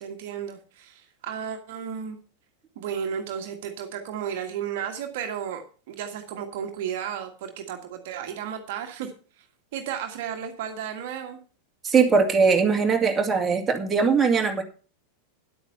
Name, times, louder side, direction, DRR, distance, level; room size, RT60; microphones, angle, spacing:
voice 1, 0.0-2.2 2.8-9.1 9.4-9.5 9.7-11.4, right 8 dB, 50° right, 5 dB, 1.7 m, -33 dB
voice 2, 11.8-14.6, right 5 dB, 15° right, 1 dB, 2.3 m, -20 dB
11.0 x 8.8 x 5.5 m, 0.38 s
figure-of-eight pair, 90°, 0 cm